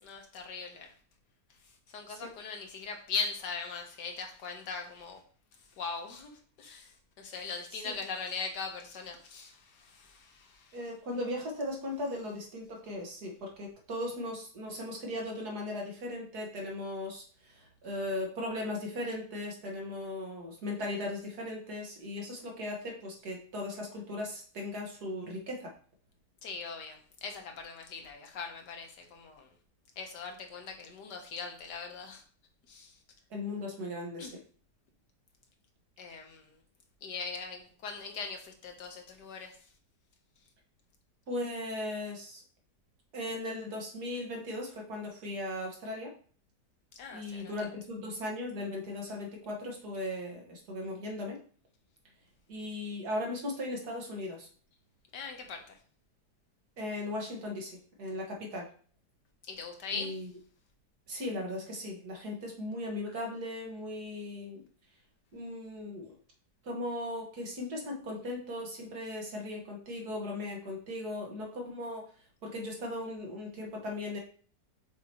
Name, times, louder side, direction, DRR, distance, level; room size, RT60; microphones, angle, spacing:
voice 1, 0.0-0.9 1.9-5.2 5.8-6.3 6.6-6.9 7.2-10.8 26.4-29.5 30.0-32.2 32.7-32.9 34.2-34.4 36.0-36.5 37.0-39.6 47.0-47.7 55.1-55.8 59.5-60.2, left 5 dB, 75° left, 3 dB, 1.7 m, -40 dB
voice 2, 10.7-25.7 33.3-34.4 41.3-42.4 43.1-46.1 47.1-51.4 52.5-54.5 56.8-58.7 59.9-60.3 61.1-64.6 65.3-66.1 66.6-72.1 72.4-74.2, left 1 dB, 65° right, 0 dB, 2.0 m, -38 dB
6.8 x 4.7 x 3.0 m, 0.43 s
omnidirectional pair, 1.8 m